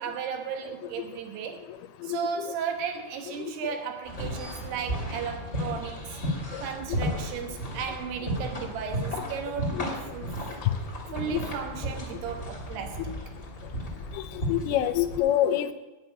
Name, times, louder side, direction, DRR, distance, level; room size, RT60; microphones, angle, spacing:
voice 1, 0.0-1.7 2.0-6.2 6.6-10.4 11.1-13.3, right 7 dB, 80° right, 3.2 m, -35 dB
voice 2, 2.0-2.5 6.5-6.6 9.7-9.8 11.3-11.4 14.1-14.2 14.5-15.7, left 11 dB, 80° left, 2.4 m, -26 dB
sound 1, 4.0-15.2, equal, 25° left, 1.8 m, -34 dB
sound 2, 7.4-14.6, left 8 dB, 60° left, 0.8 m, -56 dB
10.5 x 5.9 x 8.9 m
omnidirectional pair, 4.7 m